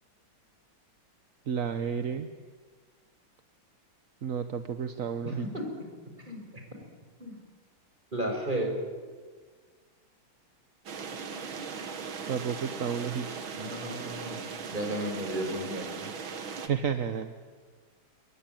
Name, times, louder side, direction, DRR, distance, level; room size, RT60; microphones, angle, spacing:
voice 1, 1.5-2.3 4.2-5.5 12.3-13.3 16.6-17.3, right 7 dB, 50° right, 8 dB, 1.2 m, -31 dB
voice 2, 5.2-5.7 6.3-6.6 7.2-7.4 8.1-8.8 13.5-14.4 14.7-16.1, right 1 dB, 20° right, 2 dB, 5.9 m, -34 dB
sound 1, 10.9-16.7, right 5 dB, 70° right, 2.6 m, -38 dB
28.5 x 23.0 x 9.1 m, 1.5 s
omnidirectional pair, 2.3 m